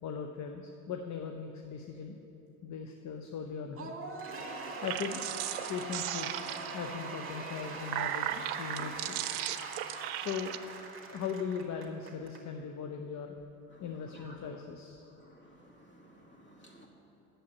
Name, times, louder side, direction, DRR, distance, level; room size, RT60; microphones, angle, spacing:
voice 1, 0.0-2.2 2.6-3.9 4.8-5.2 5.7-9.2 10.1-10.6 11.1-13.3 13.8-15.0, left 6 dB, 40° left, 4 dB, 0.8 m, -39 dB
Cheering / Applause / Crowd, 3.8-12.4, right 4 dB, 30° right, 2.1 m, -42 dB
sound 1, 4.7-6.9 7.6-10.6, right 13 dB, 65° right, 0.7 m, -37 dB
voice 2, 15.2-16.9, equal, 25° left, 0 dB, 2.5 m, -56 dB
8.6 x 7.3 x 8.3 m, 3.0 s
hypercardioid pair, 80°, 43 cm